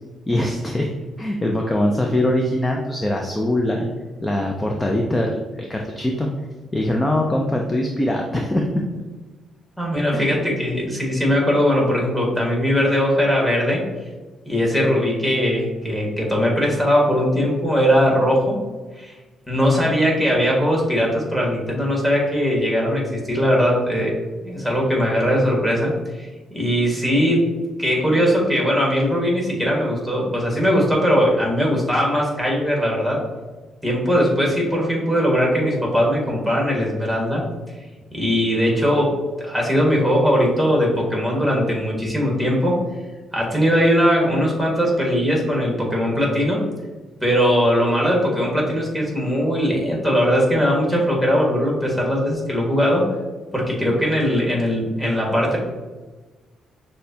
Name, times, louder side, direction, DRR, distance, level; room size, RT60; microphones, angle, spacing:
voice 1, 0.3-0.9 1.2-3.9 4.2-6.3 6.7-8.7 10.1-10.3, left 1 dB, 15° left, 1 dB, 0.4 m, -22 dB
voice 2, 9.8-13.8 14.4-18.6 19.0-19.1 19.5-24.1 24.4-26.3 26.5-27.5 27.8-33.2 33.8-37.4 38.1-42.8 43.3-46.6 47.2-53.1 53.5-55.6, equal, ahead, -2 dB, 1.4 m, -20 dB
6.3 x 2.2 x 2.7 m, 1.3 s
cardioid pair, 90°, 0 cm